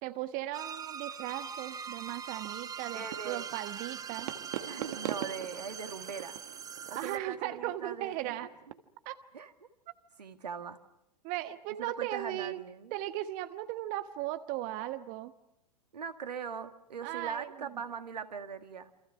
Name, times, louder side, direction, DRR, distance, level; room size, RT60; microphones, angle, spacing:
voice 1, 0.0-4.3 6.9-8.5 9.0-9.2 11.2-12.6 12.9-15.3 17.0-17.8, right 14 dB, 40° right, 12 dB, 1.0 m, -37 dB
sound 1, 0.5-7.2, right 7 dB, 15° right, 1.0 m, -42 dB
sound 2, 3.0-8.7, right 12 dB, 55° right, 1.6 m, -43 dB
voice 2, 3.0-3.5 4.6-6.4 6.9-8.3 9.3-9.5 10.2-10.8 11.8-12.9 15.9-18.9, right 6 dB, 75° right, 8 dB, 2.0 m, -41 dB
28.5 x 26.0 x 6.1 m, 0.82 s
figure-of-eight pair, 100°, 21 cm